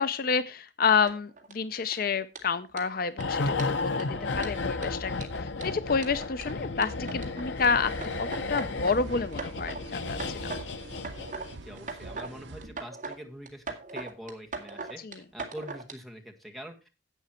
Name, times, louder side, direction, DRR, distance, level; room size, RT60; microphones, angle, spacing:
voice 1, 0.0-4.1 4.3-7.9 8.2-10.5 15.0-15.2, left 5 dB, 50° left, 14 dB, 0.5 m, -29 dB
sound 1, 1.1-1.5 1.9-2.0 2.3-2.4 2.8-2.9 3.2-3.3 3.6-4.0 4.4-7.7 8.0-9.0 9.3-9.8 10.1-10.6 10.9-11.5 11.8-12.3 12.6-13.2 13.5-15.9, right 4 dB, 45° right, 2.2 m, -39 dB
sound 2, 3.2-11.7 12.0-12.2, left 3 dB, 80° left, 0.9 m, -33 dB
voice 2, 3.9-4.6 11.6-13.6 13.9-15.0 15.3-16.9, equal, ahead, 3 dB, 1.7 m, -44 dB
sound 3, 7.6-12.7, right 2 dB, 75° right, 0.8 m, -45 dB
11.0 x 8.5 x 4.3 m, 0.27 s
head